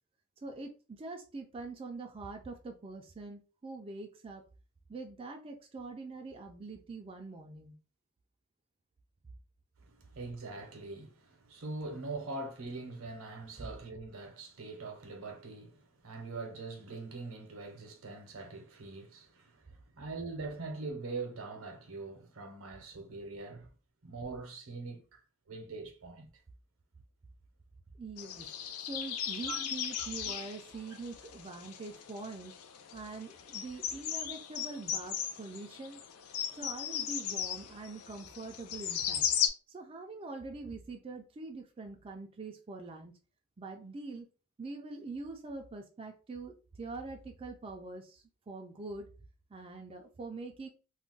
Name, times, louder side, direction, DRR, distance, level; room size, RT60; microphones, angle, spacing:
voice 1, 0.4-4.4 4.9-7.7 28.0-28.5 28.8-32.5 32.9-36.0 36.5-39.3 39.7-43.1 43.6-44.3 44.6-49.1 49.5-50.7, right 3 dB, 25° right, 0.3 m, -44 dB
voice 2, 9.8-23.7 24.0-25.2 25.5-26.3 29.5-29.7 30.0-30.4, right 3 dB, 70° right, 0.7 m, -43 dB
sound 1, 28.2-39.5, left 9 dB, 85° left, 0.5 m, -37 dB
2.4 x 2.1 x 3.7 m
head